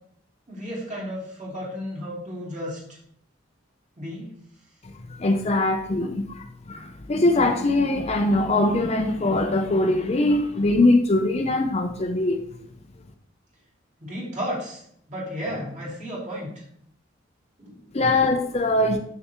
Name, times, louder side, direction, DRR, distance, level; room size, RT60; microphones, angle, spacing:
voice 1, 0.5-2.8 4.0-4.3 14.0-14.8 15.1-16.5 17.6-18.2 18.7-18.8, equal, 40° right, -5 dB, 2.8 m, -33 dB
voice 2, 4.8-12.4 17.9-19.0, left 2 dB, 35° left, 5 dB, 0.5 m, -22 dB
6.8 x 6.6 x 3.0 m, 0.67 s
head